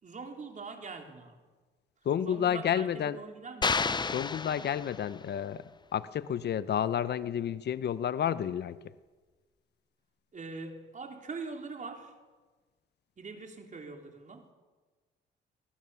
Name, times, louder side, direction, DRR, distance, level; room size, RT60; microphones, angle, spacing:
voice 1, 0.0-1.4 2.3-3.9 10.3-12.2 13.2-14.5, right 4 dB, 40° right, 3 dB, 3.7 m, -43 dB
voice 2, 2.0-3.2 4.1-5.6 5.9-8.8, left 9 dB, 55° left, 15 dB, 0.8 m, -30 dB
sound 1, 3.6-5.3, left 4 dB, 20° left, 0.6 m, -31 dB
23.5 x 18.0 x 7.0 m, 1.3 s
cardioid pair, 90°, 20 cm